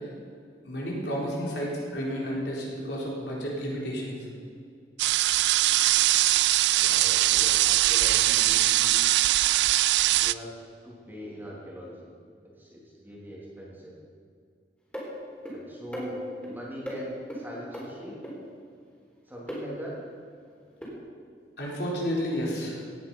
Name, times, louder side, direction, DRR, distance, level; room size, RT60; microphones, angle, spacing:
voice 1, 0.7-4.1 21.6-22.8, equal, 65° left, -4 dB, 3.9 m, -31 dB
sound 1, 5.0-10.3, right 16 dB, 70° right, 0.3 m, -22 dB
voice 2, 6.7-8.9 10.1-10.5 10.8-12.1 12.6-13.9 15.5-16.2 16.5-18.2 19.3-20.0, equal, 10° right, -5 dB, 3.1 m, -41 dB
sound 2, 14.9-15.1 15.4-15.6 15.9-16.5 16.9-17.0 17.3-17.4 17.7-17.8 18.2-18.3 19.5-19.6 20.8-20.9, equal, 10° left, 4.0 m, -35 dB
17.5 x 10.0 x 5.5 m, 2.3 s
head